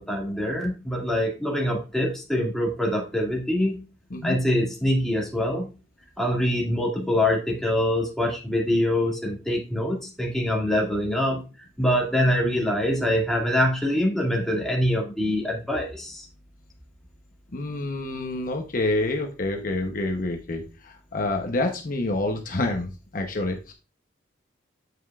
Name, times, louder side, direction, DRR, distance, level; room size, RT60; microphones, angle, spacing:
voice 1, 0.0-3.8 4.2-5.7 6.2-11.4 11.8-16.3, left 1 dB, ahead, -2 dB, 2.1 m, -24 dB
voice 2, 17.5-23.7, left 2 dB, 50° left, 3 dB, 0.8 m, -28 dB
8.0 x 7.7 x 2.4 m, 0.32 s
head